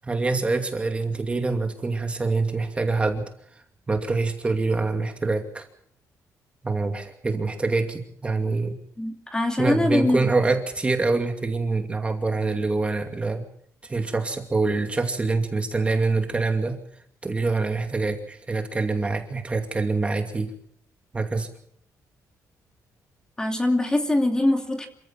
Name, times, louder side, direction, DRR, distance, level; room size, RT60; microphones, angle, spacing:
voice 1, 0.0-3.2 3.9-5.6 6.6-8.8 9.6-13.5 13.8-16.8 17.2-20.5 21.1-21.5, right 3 dB, 20° right, 4 dB, 2.5 m, -25 dB
voice 2, 9.0-10.2 23.4-24.9, left 1 dB, 10° left, 4 dB, 2.6 m, -22 dB
27.5 x 15.5 x 7.4 m, 0.67 s
cardioid pair, 145°, 6 cm